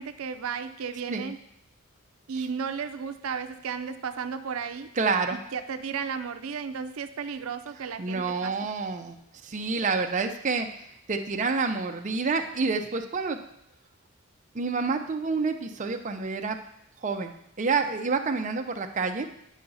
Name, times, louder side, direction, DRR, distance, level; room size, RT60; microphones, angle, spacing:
voice 1, 0.0-1.4 2.3-4.9 5.3-8.5, right 6 dB, 90° right, 9 dB, 0.5 m, -34 dB
voice 2, 5.0-5.4 8.0-9.2 9.4-10.7 11.1-13.4 14.5-16.6 17.0-19.3, right 4 dB, 35° right, 4 dB, 0.5 m, -28 dB
9.1 x 5.6 x 4.0 m, 0.75 s
head